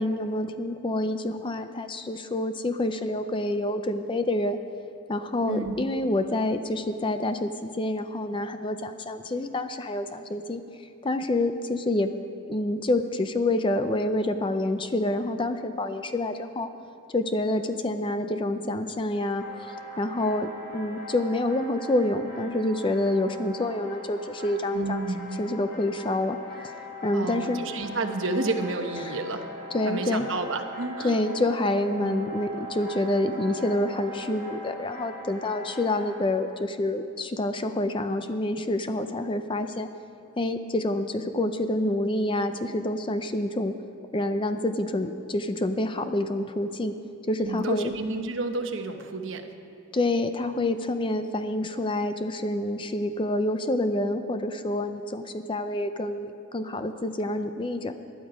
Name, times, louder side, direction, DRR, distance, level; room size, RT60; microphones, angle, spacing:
voice 1, 0.0-4.6 5.1-10.6 11.0-12.1 12.5-16.7 17.1-19.4 20.0-25.0 25.4-26.4 27.0-27.6 29.0-29.1 29.7-30.3 31.0-39.9 40.4-43.7 44.1-46.9 47.3-47.9 49.9-57.9, left 1 dB, 25° left, 9 dB, 0.5 m, -27 dB
voice 2, 5.5-6.0 24.7-25.4 27.1-29.5 29.8-31.2 32.0-32.3 47.4-49.5, right 3 dB, 60° right, 6 dB, 1.0 m, -31 dB
sound 1, 19.4-36.2, equal, 45° left, 3.3 m, -40 dB
19.0 x 11.0 x 5.0 m, 2.5 s
head